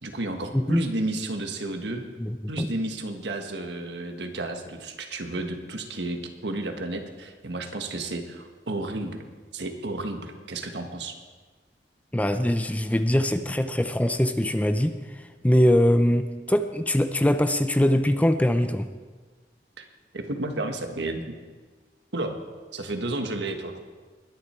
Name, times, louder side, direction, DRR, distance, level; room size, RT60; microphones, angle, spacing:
voice 1, 0.0-2.0 2.5-9.2 9.5-11.2 19.8-19.9 20.1-21.2 22.1-22.3 22.7-23.7, right 2 dB, 85° right, 5 dB, 1.5 m, -32 dB
voice 2, 2.2-2.7 12.1-18.9, left 1 dB, 10° left, 9 dB, 0.5 m, -22 dB
20.5 x 10.5 x 4.4 m, 1.4 s
head